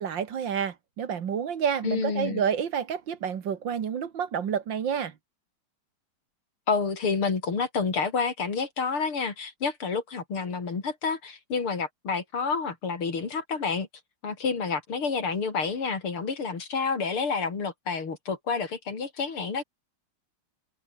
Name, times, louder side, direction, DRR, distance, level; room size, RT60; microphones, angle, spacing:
voice 1, 0.0-5.1, right 7 dB, 60° right, 2.1 m, -29 dB
voice 2, 1.8-2.4 6.7-13.9 14.2-19.6, left 5 dB, 85° left, 4.4 m, -29 dB
omnidirectional pair, 2.3 m